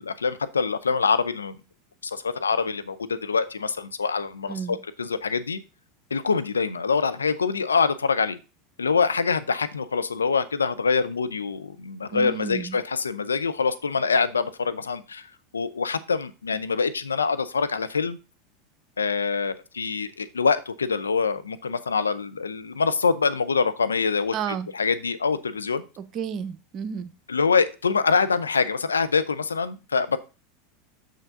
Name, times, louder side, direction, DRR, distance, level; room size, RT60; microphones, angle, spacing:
voice 1, 0.0-1.5 2.0-5.6 6.1-8.4 8.8-15.3 15.5-18.2 19.0-25.8 27.3-30.2, left 5 dB, 90° left, 0.6 m, -25 dB
voice 2, 12.1-12.8 24.3-24.7 26.0-27.1, right 7 dB, 45° right, 0.7 m, -31 dB
6.6 x 6.4 x 3.7 m
hypercardioid pair, 90°, 0 cm